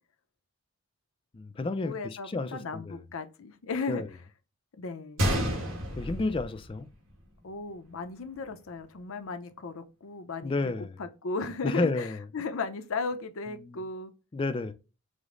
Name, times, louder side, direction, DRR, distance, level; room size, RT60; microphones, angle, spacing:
voice 1, 1.3-3.0 3.9-4.1 6.0-6.9 10.4-10.9 11.6-12.2 13.6-13.8 14.3-14.7, left 3 dB, 25° left, 0.3 m, -31 dB
voice 2, 1.8-4.0 4.8-5.3 7.4-14.1, left 4 dB, 75° left, 0.6 m, -36 dB
Gunshot gunfire, 5.2-7.2 7.5-7.6 8.3-8.5, equal, 70° right, 1.4 m, -30 dB
5.0 x 2.0 x 3.7 m
head